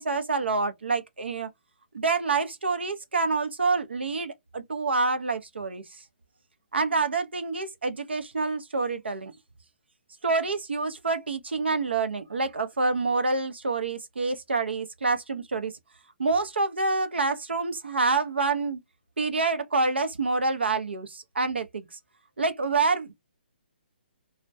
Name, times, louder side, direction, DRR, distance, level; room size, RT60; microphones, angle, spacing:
voice 1, 0.0-1.5 1.9-5.8 6.7-9.3 10.2-15.7 16.2-18.8 19.2-21.9 22.4-23.1, right 3 dB, 85° right, 0.6 m, -27 dB
2.2 x 2.1 x 2.5 m
hypercardioid pair, 145°, 6 cm